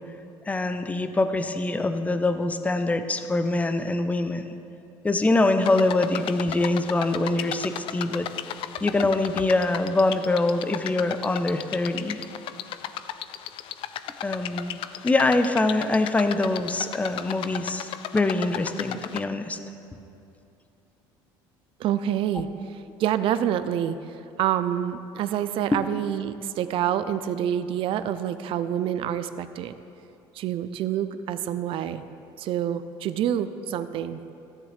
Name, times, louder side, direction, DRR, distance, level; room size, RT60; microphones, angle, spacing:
voice 1, 0.5-4.6 5.0-8.3 8.8-12.2 14.2-14.8 15.0-19.6 25.7-25.8, left 2 dB, 15° left, 9 dB, 0.6 m, -24 dB
sound 1, 5.6-19.2, left 11 dB, 60° left, 0.4 m, -35 dB
voice 2, 21.8-22.5 23.0-24.0 24.4-29.8 30.4-32.0 32.4-34.2, right 10 dB, 60° right, 12 dB, 0.4 m, -27 dB
13.5 x 9.6 x 3.3 m, 2.7 s
supercardioid pair, 95°, 10 cm